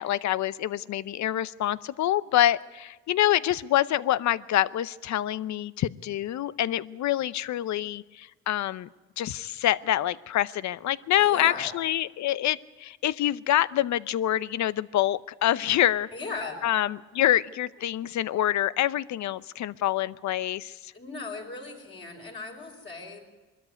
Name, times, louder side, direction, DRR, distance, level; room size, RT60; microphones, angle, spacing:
voice 1, 0.0-8.9 9.2-16.1 16.6-20.9, left 12 dB, 70° left, 17 dB, 0.7 m, -26 dB
voice 2, 11.2-11.7 16.1-16.7 20.9-23.2, left 3 dB, 40° left, -2 dB, 5.2 m, -37 dB
22.0 x 13.5 x 9.6 m, 1.2 s
cardioid pair, 90°, 30 cm